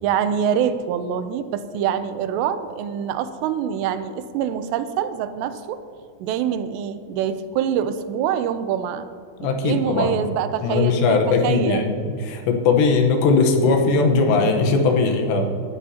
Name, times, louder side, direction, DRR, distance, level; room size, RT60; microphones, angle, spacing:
voice 1, 0.0-5.8 6.2-9.1 9.4-11.2 11.4-11.9, right 8 dB, 85° right, 11 dB, 2.8 m, -25 dB
voice 2, 9.4-10.2 10.6-15.5, left 4 dB, 90° left, 3 dB, 3.4 m, -19 dB
19.5 x 11.5 x 2.9 m, 2.3 s
omnidirectional pair, 4.8 m